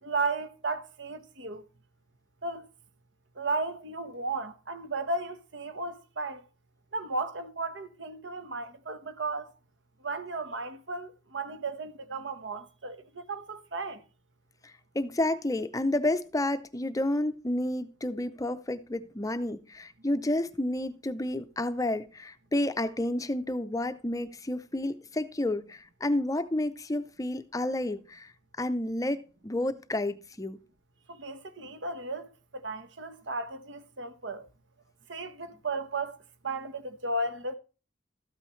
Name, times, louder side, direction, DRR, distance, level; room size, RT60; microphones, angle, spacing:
voice 1, 0.0-1.6 2.4-2.7 3.3-6.4 6.9-9.5 10.0-14.0 31.1-34.5 35.1-37.6, right 3 dB, 70° right, 1.2 m, -35 dB
voice 2, 14.6-28.3 28.6-30.6, left 1 dB, 20° left, 0.5 m, -30 dB
13.0 x 8.8 x 3.1 m
head